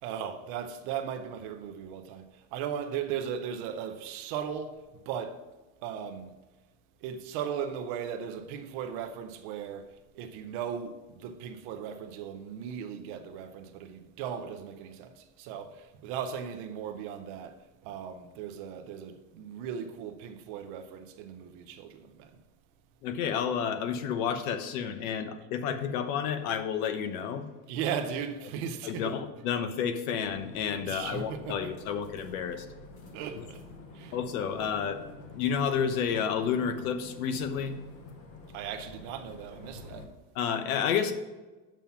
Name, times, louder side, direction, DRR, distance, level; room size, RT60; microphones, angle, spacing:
voice 1, 0.0-5.4 5.8-6.3 7.0-22.3 27.7-29.2 30.8-31.7 33.1-33.7 33.9-34.2 38.5-40.1, right 8 dB, 40° right, 0.5 m, -37 dB
voice 2, 23.0-27.4 28.8-32.7 33.4-33.5 34.1-35.0 35.3-37.8 40.3-41.1, left 7 dB, 75° left, 1.0 m, -30 dB
sound 1, 30.2-40.1, left 3 dB, 35° left, 0.9 m, -48 dB
7.2 x 5.6 x 5.7 m
cardioid pair, 180°, 44 cm